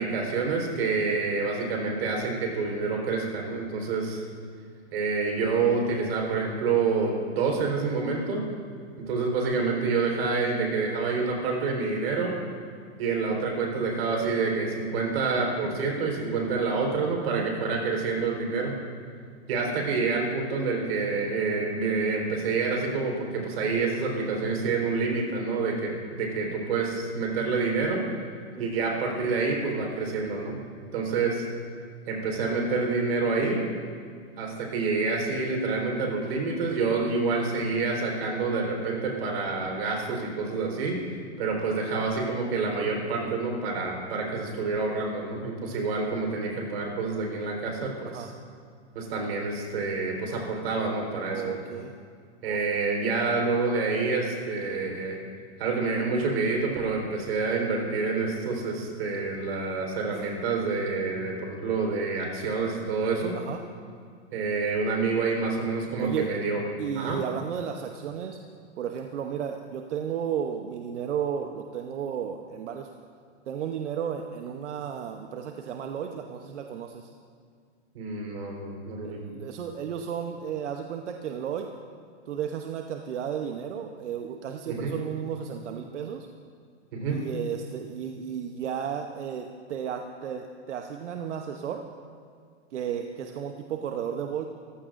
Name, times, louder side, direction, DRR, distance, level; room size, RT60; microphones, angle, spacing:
voice 1, 0.0-4.2 4.9-8.4 9.1-12.3 13.0-18.7 19.5-28.0 28.6-30.6 30.9-31.4 32.1-33.6 34.4-41.0 41.4-48.3 48.9-51.6 52.4-55.2 55.6-63.3 64.3-66.6 67.0-67.2 77.9-79.2 84.7-84.9 86.9-87.2, right 4 dB, 55° right, 0 dB, 4.2 m, -27 dB
voice 2, 51.3-51.9 52.4-52.6 63.3-63.6 66.0-66.3 66.8-68.4 68.8-72.9 73.5-77.1 79.0-81.7 82.3-86.3 87.1-91.8 92.7-94.5, right 8 dB, 90° right, 4 dB, 1.0 m, -33 dB
23.0 x 15.5 x 2.6 m, 2.2 s
supercardioid pair, 165°, 34 cm